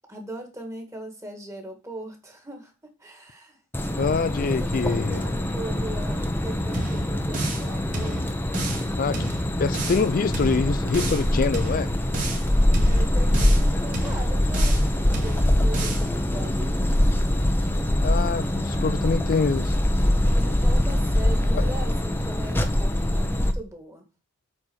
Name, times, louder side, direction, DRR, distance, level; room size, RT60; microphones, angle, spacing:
voice 1, 0.1-3.6 4.1-4.2 4.5-8.3 12.9-17.2 20.3-24.0, right 1 dB, 15° right, 2.1 m, -39 dB
sound 1, 3.7-23.5, left 1 dB, 10° left, 0.9 m, -23 dB
voice 2, 4.0-5.2 9.0-9.3 9.6-11.9 18.0-19.8 21.5-21.6, left 4 dB, 40° left, 0.3 m, -25 dB
sound 2, 6.7-7.7 7.9-8.9 9.1-10.1 10.3-11.3 11.5-12.5 12.7-13.7 13.9-14.9 15.1-16.1, right 2 dB, 40° right, 2.6 m, -32 dB
8.7 x 4.5 x 6.2 m
head